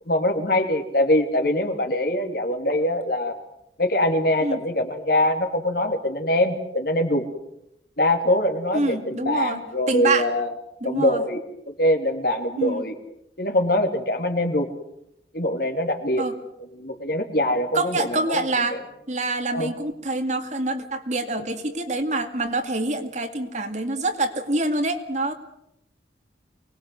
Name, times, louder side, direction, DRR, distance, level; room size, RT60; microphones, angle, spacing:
voice 1, 0.1-3.4 3.8-7.2 8.0-10.5 10.8-11.4 11.8-12.9 13.4-14.7 15.3-16.2 16.8-18.4 18.7-18.8 19.5-19.7, left 1 dB, 55° left, 6 dB, 3.1 m, -23 dB
voice 2, 8.7-9.6 9.9-10.3 10.8-11.2 12.6-12.8 16.2-16.3 17.7-18.8 19.1-25.3, right 2 dB, 40° right, 6 dB, 2.2 m, -26 dB
25.0 x 20.5 x 7.9 m, 0.79 s
head